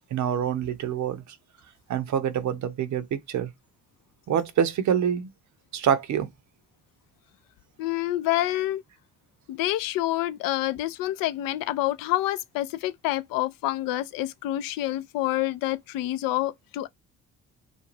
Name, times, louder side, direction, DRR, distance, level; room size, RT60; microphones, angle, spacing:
voice 1, 0.1-1.4 1.9-3.5 4.3-5.3 5.7-6.3, right 8 dB, 50° right, 0.6 m, -26 dB
voice 2, 7.8-8.8 9.5-16.9, left 15 dB, 65° left, 0.5 m, -27 dB
2.5 x 2.2 x 3.0 m
hypercardioid pair, 50°, 37 cm